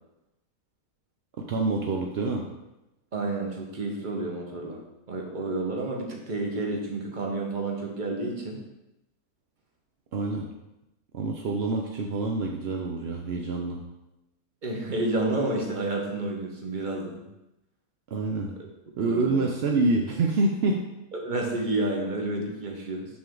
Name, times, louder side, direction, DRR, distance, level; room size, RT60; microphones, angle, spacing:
voice 1, 1.4-2.5 10.1-10.5 11.1-13.8 18.1-18.5 19.0-20.8, right 3 dB, 60° right, 1 dB, 0.6 m, -26 dB
voice 2, 3.1-4.8 5.1-8.6 14.6-17.2 19.0-19.5 21.2-23.1, right 2 dB, 30° right, 0 dB, 1.2 m, -30 dB
6.5 x 6.0 x 3.8 m, 0.94 s
omnidirectional pair, 1.7 m